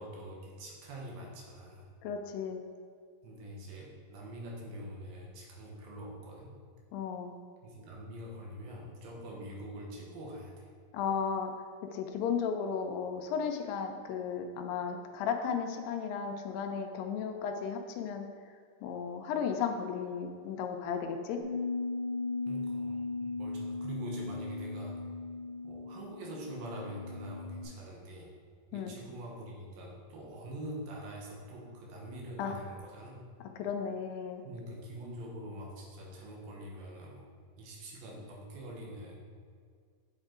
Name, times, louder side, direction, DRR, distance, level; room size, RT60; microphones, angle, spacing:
voice 1, 0.0-1.9 3.2-6.6 7.6-10.7 22.5-25.0 25.6-28.3 28.7-33.3 34.4-37.3 37.6-39.2, right 1 dB, 85° right, -2 dB, 2.9 m, -44 dB
voice 2, 2.0-2.6 6.9-7.3 10.9-11.5 11.8-18.3 18.8-21.4 28.7-29.0 32.4-32.6 33.6-34.4, left 6 dB, 80° left, 5 dB, 2.2 m, -34 dB
Bass guitar, 21.4-27.7, left 3 dB, 55° right, 2.5 m, -37 dB
7.9 x 4.4 x 3.7 m, 2.1 s
omnidirectional pair, 4.1 m